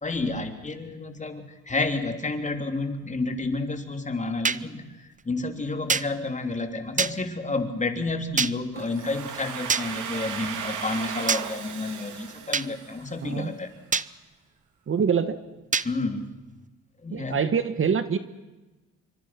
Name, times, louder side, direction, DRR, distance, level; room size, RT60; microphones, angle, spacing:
voice 1, 0.0-13.7 15.8-16.3 17.0-17.4, left 3 dB, 25° left, 6 dB, 3.2 m, -30 dB
sound 1, 4.4-4.6 5.9-6.1 7.0-7.1 8.4-8.5 9.7-9.9 11.3-11.4 12.5-12.7 13.9-14.1 15.7-15.9, right 5 dB, 25° right, 0.8 m, -24 dB
Domestic sounds home sounds, 8.8-13.5, right 7 dB, 80° right, 3.2 m, -36 dB
voice 2, 13.2-13.5 14.9-15.4 17.1-18.2, right 6 dB, 45° right, 11 dB, 1.5 m, -25 dB
26.5 x 24.5 x 6.0 m, 1.1 s
cardioid pair, 90°, 30 cm